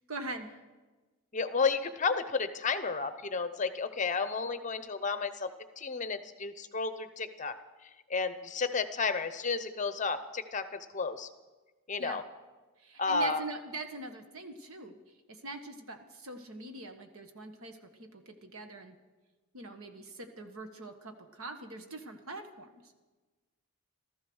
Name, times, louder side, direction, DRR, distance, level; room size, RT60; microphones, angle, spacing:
voice 1, 0.1-0.6 12.0-12.2 12.8-15.0 15.3-19.0 19.5-22.8, right 2 dB, 70° right, 6 dB, 1.4 m, -43 dB
voice 2, 1.3-7.5 7.8-11.3 11.9-12.2 13.0-13.4, left 4 dB, 35° left, 11 dB, 0.7 m, -32 dB
15.5 x 13.5 x 6.3 m, 1.2 s
head